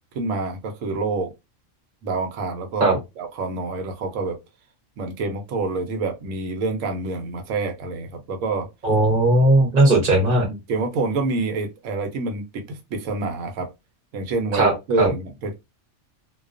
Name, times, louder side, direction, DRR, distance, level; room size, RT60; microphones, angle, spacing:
voice 1, 0.1-1.3 2.0-2.9 3.2-4.4 5.0-8.7 10.5-13.7 14.1-15.6, right 3 dB, 80° right, 1.0 m, -27 dB
voice 2, 8.8-10.5 14.5-14.7 15.0-15.1, right 2 dB, 40° right, 0.8 m, -17 dB
2.3 x 2.2 x 2.4 m
omnidirectional pair, 1.4 m